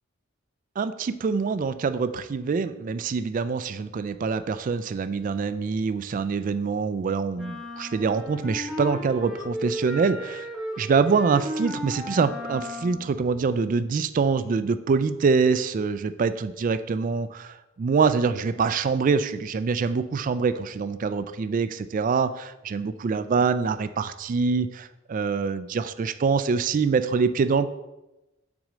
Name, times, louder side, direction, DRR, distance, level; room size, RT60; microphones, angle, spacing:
voice 1, 0.8-10.5 10.8-27.7, right 5 dB, 40° right, 12 dB, 0.3 m, -25 dB
sound 1, 7.4-13.1, equal, ahead, 0.8 m, -35 dB
6.1 x 4.2 x 5.0 m, 0.97 s
head